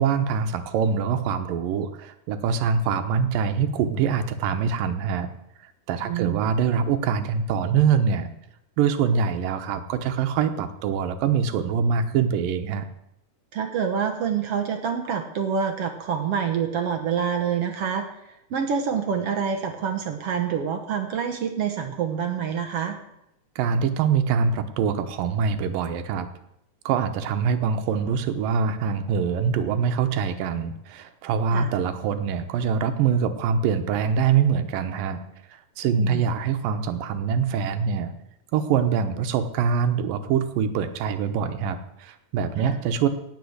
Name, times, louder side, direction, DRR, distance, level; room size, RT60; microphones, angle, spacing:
voice 1, 0.0-5.3 5.9-8.3 8.8-12.9 23.6-26.3 26.9-35.2 35.5-38.1 38.5-43.1, right 6 dB, 80° right, 9 dB, 2.7 m, -24 dB
voice 2, 6.0-6.4 13.5-18.0 18.5-23.0 31.5-31.7 36.0-36.2 42.6-42.7, right 7 dB, 60° right, 5 dB, 1.7 m, -27 dB
17.5 x 6.2 x 7.9 m, 0.82 s
omnidirectional pair, 3.9 m